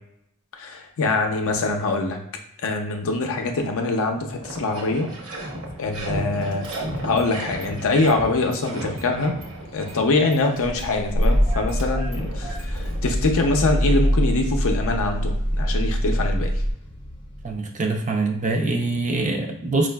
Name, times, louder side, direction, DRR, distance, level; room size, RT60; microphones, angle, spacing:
voice 1, 0.6-2.2 2.6-5.1 5.8-6.7 7.0-9.4 9.7-16.5, left 2 dB, 65° left, 4 dB, 0.5 m, -24 dB
sound 1, 3.7-3.8 4.1-13.5, right 1 dB, 60° right, 0.9 m, -35 dB
Car / Engine starting, 5.9-6.2 6.5-7.3 7.6-8.7 9.0-16.7, equal, 85° right, 1.1 m, -25 dB
sound 2, 12.5-17.5, left 1 dB, 25° left, 0.6 m, -40 dB
voice 2, 17.4-19.9, right 3 dB, 35° right, 3 dB, 0.5 m, -24 dB
4.7 x 2.4 x 2.2 m, 0.76 s
head